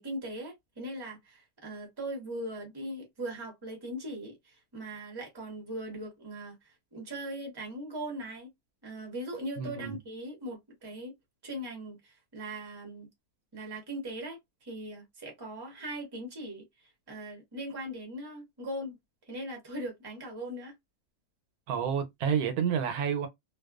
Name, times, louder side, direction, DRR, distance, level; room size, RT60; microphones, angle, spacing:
voice 1, 0.0-8.5 8.8-11.1 11.4-13.1 13.5-16.6 17.1-19.0 19.2-20.7, right 1 dB, 20° right, 0.8 m, -40 dB
voice 2, 9.6-10.0 21.7-23.3, right 7 dB, 85° right, 1.1 m, -29 dB
2.5 x 2.2 x 2.3 m
omnidirectional pair, 1.6 m